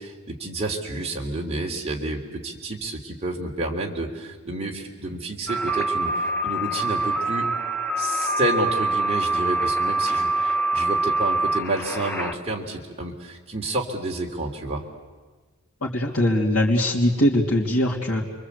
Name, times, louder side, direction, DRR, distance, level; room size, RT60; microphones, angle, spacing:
voice 1, 0.0-7.5 8.0-14.8, right 2 dB, 30° right, -1 dB, 3.6 m, -30 dB
sound 1, 5.5-12.3, right 2 dB, 5° left, 1.5 m, -25 dB
voice 2, 15.8-18.2, left 1 dB, 70° left, -4 dB, 3.1 m, -21 dB
29.0 x 23.5 x 8.4 m, 1.3 s
head